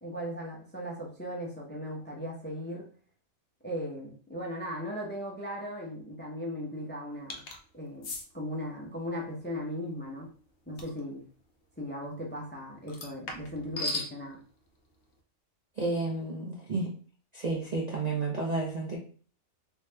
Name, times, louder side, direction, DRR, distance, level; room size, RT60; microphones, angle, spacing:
voice 1, 0.0-2.8 3.6-7.4 7.7-8.1 8.3-10.3 10.7-11.2 11.8-14.4, equal, 10° left, -2 dB, 0.5 m, -37 dB
sound 1, 7.3-7.6 8.0-8.2 10.8-11.0 12.9-14.1, left 3 dB, 60° left, 0.7 m, -36 dB
voice 2, 15.8-16.9 17.3-19.0, right 3 dB, 45° right, -2 dB, 0.5 m, -31 dB
3.2 x 2.7 x 3.2 m, 0.43 s
omnidirectional pair, 1.4 m